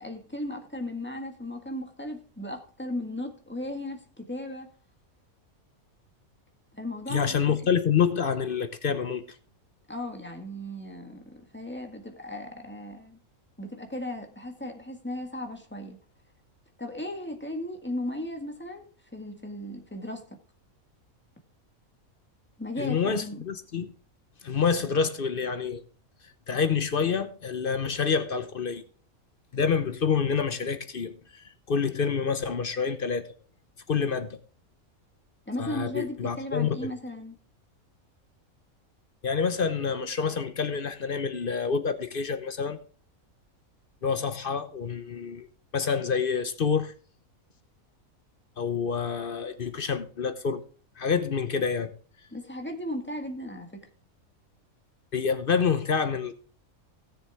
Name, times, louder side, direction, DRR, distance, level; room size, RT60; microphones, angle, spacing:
voice 1, 0.0-4.7 6.7-7.6 9.9-13.2 13.6-16.0 16.8-18.8 19.1-20.2 22.6-23.4 35.5-37.4 52.3-53.9, left 1 dB, 10° left, 1.7 m, -36 dB
voice 2, 7.1-9.2 22.8-23.9 24.4-25.8 26.5-28.8 29.5-33.2 33.9-34.4 35.6-36.9 39.2-42.8 44.0-45.5 45.7-46.9 48.6-50.6 51.0-51.9 55.1-56.3, left 6 dB, 45° left, 0.9 m, -27 dB
17.0 x 7.0 x 3.5 m
omnidirectional pair, 1.5 m